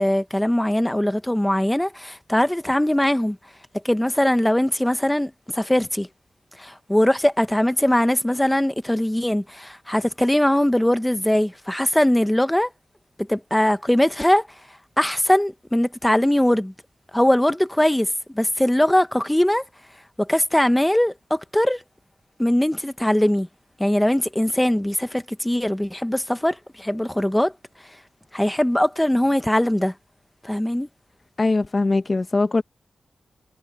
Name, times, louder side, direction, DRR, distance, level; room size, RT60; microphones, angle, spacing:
voice 1, 0.0-3.4 3.8-6.1 6.6-12.7 13.3-14.5 15.0-16.7 17.1-18.1 18.3-19.6 20.2-21.8 22.4-23.5 23.8-27.5 28.3-29.9 30.4-30.9, left 1 dB, 5° left, 1.0 m, -21 dB
voice 2, 31.4-32.6, left 3 dB, 30° left, 1.3 m, -21 dB
wide cardioid pair, 135°, 0 cm